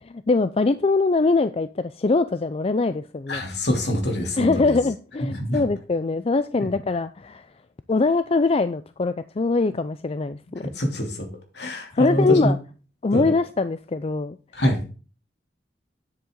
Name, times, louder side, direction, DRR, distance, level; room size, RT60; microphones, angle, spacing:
voice 1, 0.3-3.4 4.4-7.5 7.9-10.6 11.9-12.6 13.0-14.4, left 3 dB, 35° left, 0.4 m, -22 dB
voice 2, 3.3-4.8 5.2-5.6 6.6-6.7 10.6-11.3 11.5-12.5 13.1-13.3 14.5-14.8, equal, 70° left, 3.1 m, -25 dB
9.8 x 8.2 x 3.8 m
head